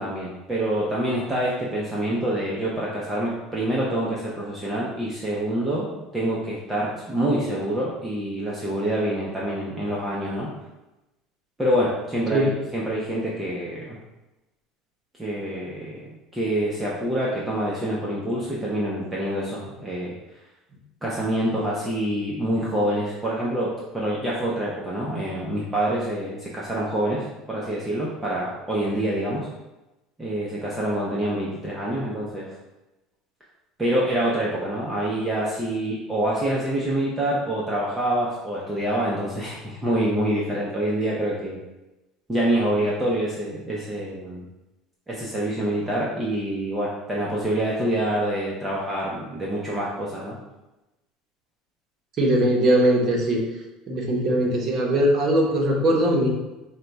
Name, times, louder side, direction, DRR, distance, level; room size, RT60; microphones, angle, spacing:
voice 1, 0.0-10.5 11.6-14.0 15.2-16.1 16.3-20.1 21.0-29.5 30.2-32.5 33.8-41.6 42.3-44.5 45.1-50.4, right 1 dB, 10° right, -6 dB, 0.6 m, -26 dB
voice 2, 52.2-53.4 53.9-56.3, right 1 dB, 35° right, -1 dB, 1.0 m, -20 dB
4.4 x 2.2 x 4.0 m, 1.0 s
cardioid pair, 135°, 0 cm